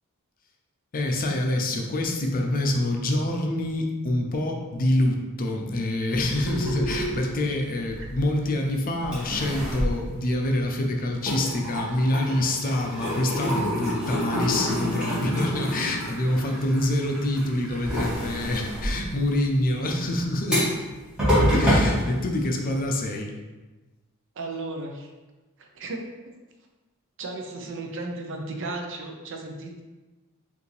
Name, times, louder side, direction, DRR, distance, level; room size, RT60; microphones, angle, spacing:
voice 1, 0.9-20.7 21.5-23.3, left 1 dB, 40° left, 2 dB, 0.5 m, -26 dB
sound 1, 6.1-8.6 9.0-10.8 11.1-22.8, equal, 5° right, 1.5 m, -28 dB
voice 2, 24.4-25.1 25.6-26.0 27.2-29.8, right 2 dB, 60° right, 2 dB, 0.6 m, -34 dB
4.8 x 2.6 x 3.2 m, 1.2 s
head